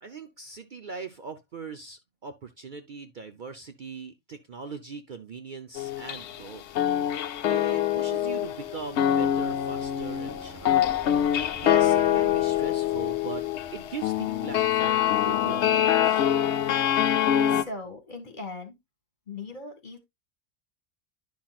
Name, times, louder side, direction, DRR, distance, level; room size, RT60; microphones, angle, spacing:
voice 1, 0.0-6.6 7.4-11.1 11.6-13.4 13.7-16.3, right 5 dB, 50° right, 0.7 m, -40 dB
sound 1, 5.8-6.5 6.7-17.6, left 11 dB, 70° left, 0.9 m, -25 dB
sound 2, 5.9-17.2, equal, 5° right, 2.4 m, -52 dB
voice 2, 17.5-18.7 19.3-20.0, left 2 dB, 40° left, 1.9 m, -39 dB
10.5 x 5.9 x 2.3 m
omnidirectional pair, 1.2 m